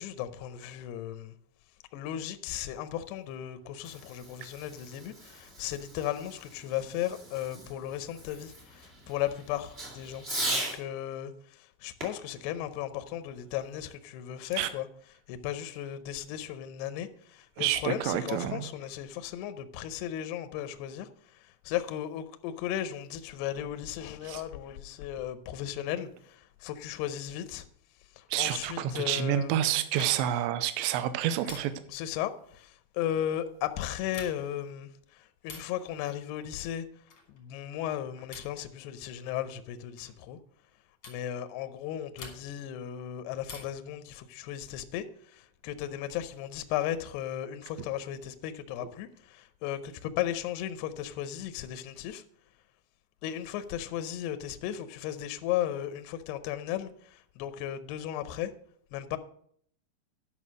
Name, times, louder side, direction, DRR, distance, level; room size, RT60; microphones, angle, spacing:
voice 1, 0.0-1.3 1.9-27.7 28.1-29.6 31.8-36.9 37.3-40.4 41.1-52.2 53.2-58.5 58.9-59.2, left 11 dB, 85° left, 2.3 m, -36 dB
Fireworks, 3.5-10.8 12.0-13.6, right 1 dB, 35° right, 0.9 m, -40 dB
voice 2, 17.6-18.7 24.3-24.4 28.3-31.7, right 11 dB, 80° right, 2.7 m, -29 dB
sound 1, 29.9-30.4 31.4-32.0 34.0-34.6 35.4-35.8 37.1-37.4 38.3-38.7 40.0-40.2 41.0-41.3 42.2-42.7 43.4-43.9 45.4-46.1, left 4 dB, 65° left, 1.2 m, -47 dB
11.0 x 5.7 x 6.2 m
omnidirectional pair, 5.5 m